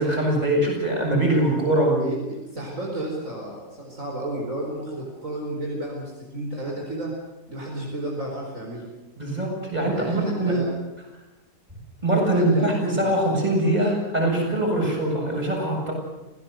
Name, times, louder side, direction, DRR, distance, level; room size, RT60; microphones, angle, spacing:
voice 1, 0.0-2.0 9.2-10.6 12.0-15.9, right 1 dB, 25° right, -1 dB, 7.8 m, -22 dB
voice 2, 2.0-7.1 7.5-8.9 9.9-10.7 12.3-13.1, right 1 dB, 55° right, -2 dB, 5.1 m, -32 dB
28.0 x 17.0 x 8.1 m, 1.1 s
omnidirectional pair, 1.7 m